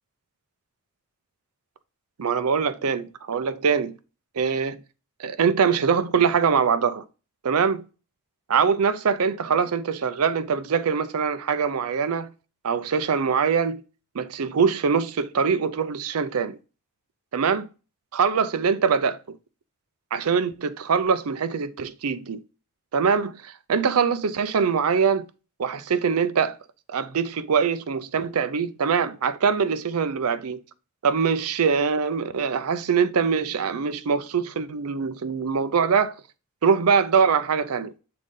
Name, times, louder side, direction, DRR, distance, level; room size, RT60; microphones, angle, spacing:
voice 1, 2.2-3.9 4.4-4.8 5.2-7.0 7.4-7.8 8.5-12.3 12.6-13.8 14.1-16.6 17.3-17.7 18.1-19.4 20.1-22.4 22.9-25.3 25.6-26.6 26.9-30.6 31.0-36.1 36.6-37.9, right 6 dB, 75° right, 0.5 m, -23 dB
6.7 x 3.9 x 3.7 m
head